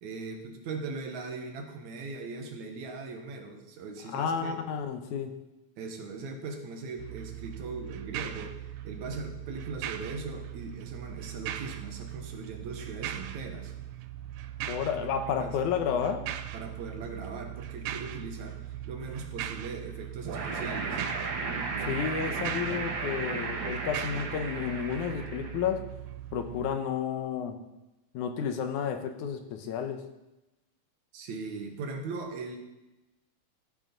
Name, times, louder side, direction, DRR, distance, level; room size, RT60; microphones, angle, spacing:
voice 1, 0.0-4.6 5.8-13.7 15.0-15.1 15.4-15.6 16.5-18.6 18.9-21.0 31.1-32.6, right 3 dB, 75° right, 4 dB, 2.5 m, -39 dB
voice 2, 4.1-5.3 14.6-16.2 21.9-25.8 26.3-27.5 28.1-30.0, left 7 dB, 80° left, 6 dB, 2.4 m, -31 dB
sound 1, 7.0-26.8, right 12 dB, 90° right, 2.1 m, -40 dB
sound 2, 20.2-25.7, right 4 dB, 55° right, 1.5 m, -34 dB
14.0 x 6.4 x 5.3 m, 1.0 s
omnidirectional pair, 3.4 m